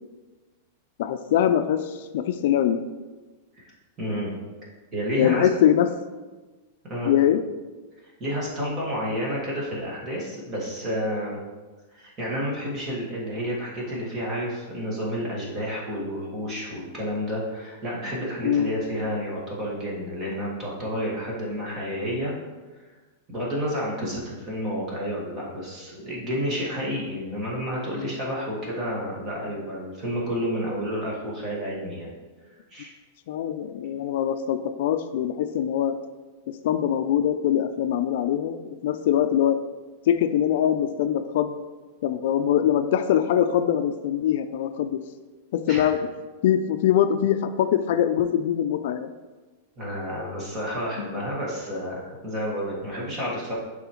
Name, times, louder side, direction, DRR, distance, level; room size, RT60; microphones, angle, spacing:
voice 1, 1.0-2.8 5.2-5.9 7.0-7.4 18.4-18.7 33.3-36.0 36.5-39.6 40.1-41.5 42.0-45.0 45.5-46.0 46.4-49.1 51.0-51.1, left 10 dB, 55° left, 9 dB, 0.4 m, -23 dB
voice 2, 4.0-4.4 4.9-5.5 6.9-7.1 8.0-11.4 11.9-22.3 23.3-32.1 32.7-32.9 45.7-45.9 49.8-53.5, equal, 20° right, -4 dB, 1.6 m, -30 dB
10.5 x 4.1 x 3.0 m, 1.3 s
supercardioid pair, 170°, 0 cm